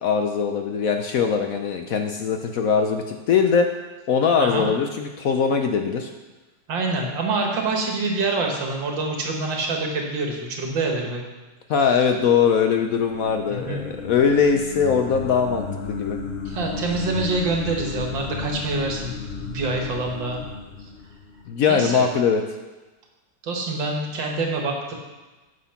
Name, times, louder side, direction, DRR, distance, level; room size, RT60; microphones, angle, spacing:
voice 1, 0.0-3.7 4.1-6.1 11.7-16.2 21.5-22.4, left 6 dB, 65° left, 5 dB, 0.9 m, -21 dB
voice 2, 6.7-11.2 13.5-13.8 16.5-20.4 21.7-22.1 23.4-24.9, right 3 dB, 85° right, 1 dB, 2.2 m, -26 dB
Evil Choir, 12.6-21.7, left 5 dB, 80° left, 0.5 m, -34 dB
9.4 x 6.6 x 5.7 m, 1.2 s
omnidirectional pair, 2.0 m